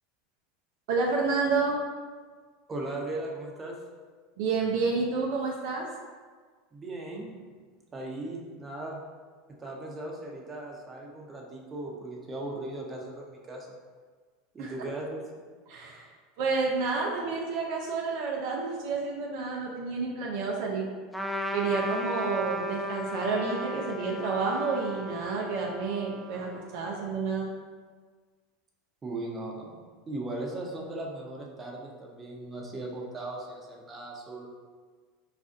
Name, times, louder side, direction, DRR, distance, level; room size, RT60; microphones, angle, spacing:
voice 1, 0.9-1.8 4.4-5.9 14.6-14.7 15.7-16.1 16.4-20.9 21.5-27.5, right 4 dB, 65° right, -1 dB, 0.5 m, -30 dB
voice 2, 2.7-3.8 6.7-7.3 7.9-9.0 9.6-13.8 14.5-15.5 29.0-29.8 30.1-34.5, right 2 dB, 25° right, -1 dB, 0.7 m, -38 dB
Trumpet, 21.1-27.0, equal, ahead, 0.3 m, -35 dB
4.9 x 2.4 x 2.5 m, 1.5 s
hypercardioid pair, 85°, 0 cm